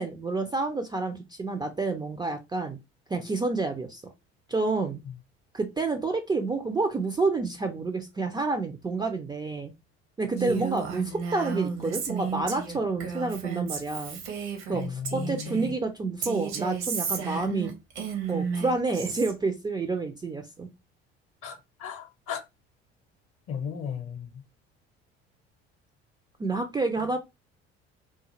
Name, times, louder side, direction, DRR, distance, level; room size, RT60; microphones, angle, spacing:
voice 1, 0.0-2.8 3.1-4.0 4.5-5.0 5.5-9.7 10.2-14.2 14.7-17.7 18.3-20.7 26.4-27.2, right 3 dB, 15° right, 0.4 m, -29 dB
Female speech woman speaking, 10.4-15.7 16.2-19.3, right 6 dB, 65° right, 0.8 m, -33 dB
voice 2, 14.7-15.7 21.4-22.4 23.5-24.4, left 7 dB, 45° left, 0.7 m, -36 dB
2.4 x 2.4 x 2.9 m
figure-of-eight pair, 60°, 32 cm